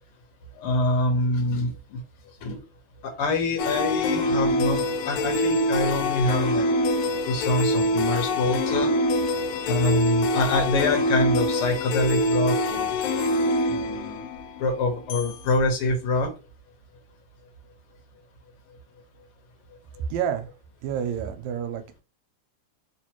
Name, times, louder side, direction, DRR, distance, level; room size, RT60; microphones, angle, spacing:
voice 1, 0.5-2.0 2.4-2.6 3.0-6.7 7.2-8.9 9.7-12.9 13.7-14.2 14.6-16.3, left 2 dB, 65° left, 3 dB, 1.5 m, -25 dB
sound 1, 3.6-15.3, left 1 dB, 85° left, 1.4 m, -25 dB
voice 2, 20.1-20.5 20.8-22.0, right 8 dB, 80° right, 8 dB, 1.9 m, -29 dB
4.5 x 2.5 x 2.9 m, 0.31 s
omnidirectional pair, 3.4 m